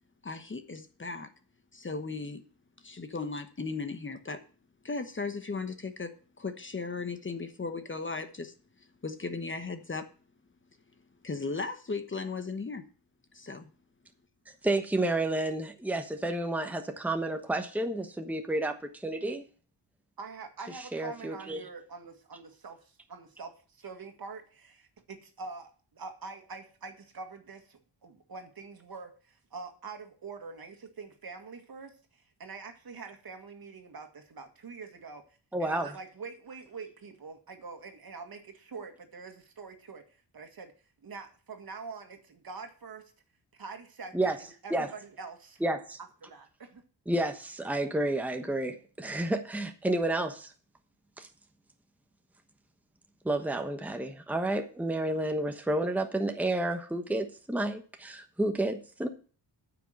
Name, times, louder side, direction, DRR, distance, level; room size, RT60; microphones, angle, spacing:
voice 1, 0.2-1.3 1.7-2.4 2.8-4.4 4.8-8.5 9.0-10.1 11.2-12.8 13.3-13.7, left 4 dB, 30° left, 8 dB, 1.1 m, -36 dB
voice 2, 14.6-19.4 20.9-21.6 35.5-35.9 44.1-44.4 44.7-44.9 45.6-46.0 47.1-50.5 51.2-51.3 53.2-59.1, right 1 dB, 5° right, 5 dB, 1.1 m, -30 dB
voice 3, 20.2-35.2 35.6-40.0 40.3-40.7 41.0-43.1 43.5-45.6 46.2-46.8, right 4 dB, 55° right, 5 dB, 1.9 m, -45 dB
9.3 x 6.0 x 7.7 m, 0.40 s
cardioid pair, 95°, 42 cm